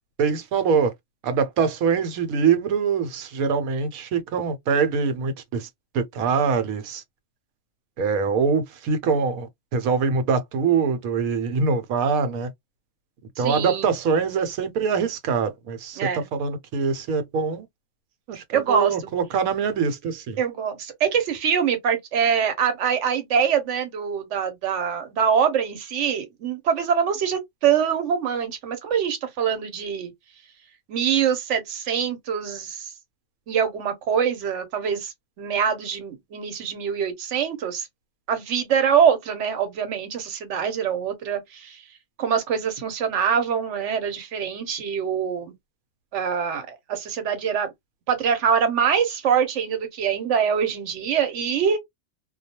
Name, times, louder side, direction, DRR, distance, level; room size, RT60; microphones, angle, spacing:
voice 1, 0.2-0.9 1.2-5.7 5.9-7.0 8.0-12.5 13.4-17.7 18.3-20.4, right 5 dB, 85° right, 1.1 m, -24 dB
voice 2, 13.4-13.9 16.0-16.3 18.5-18.9 20.4-30.1 30.9-32.9 33.5-37.9 38.3-41.8 42.2-45.5 46.1-47.7 48.1-51.8, right 7 dB, 65° right, 1.0 m, -24 dB
2.3 x 2.2 x 2.7 m
omnidirectional pair, 1.5 m